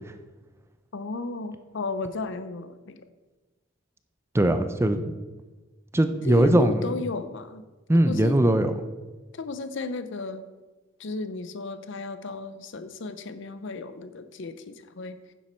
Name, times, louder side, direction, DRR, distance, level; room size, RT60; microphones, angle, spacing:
voice 1, 0.9-3.0 6.3-7.6 8.1-8.4 9.3-10.4 11.0-15.2, left 3 dB, 65° left, 11 dB, 0.6 m, -34 dB
voice 2, 4.3-5.1 5.9-6.9 7.9-8.7, right 1 dB, 15° right, 9 dB, 0.4 m, -20 dB
10.0 x 7.4 x 4.3 m, 1.2 s
head